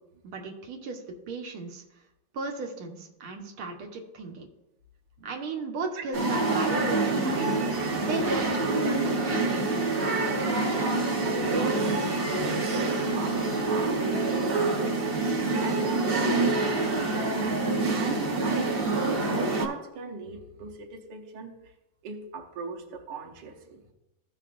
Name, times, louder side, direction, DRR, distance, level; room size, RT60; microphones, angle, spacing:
voice 1, 0.2-1.8 2.3-4.5 5.2-7.6 8.0-9.9, right 3 dB, 90° right, 2 dB, 1.9 m, -36 dB
sound 1, 6.1-19.7, right 3 dB, 40° right, 0.8 m, -26 dB
voice 2, 11.2-17.5 17.8-21.7 22.0-23.8, right 4 dB, 60° right, 1 dB, 1.6 m, -39 dB
15.5 x 5.9 x 2.5 m, 0.93 s
omnidirectional pair, 2.3 m